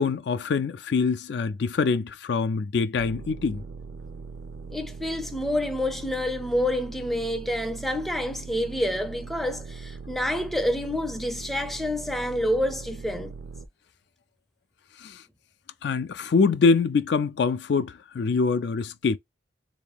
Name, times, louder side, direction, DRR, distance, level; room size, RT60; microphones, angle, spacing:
voice 1, 0.0-3.6 15.0-15.2 15.8-19.2, left 4 dB, 65° left, 0.3 m, -24 dB
sound 1, 3.0-13.7, right 4 dB, 65° right, 0.5 m, -40 dB
voice 2, 4.7-13.3, left 1 dB, ahead, 0.4 m, -28 dB
3.6 x 2.7 x 3.3 m
head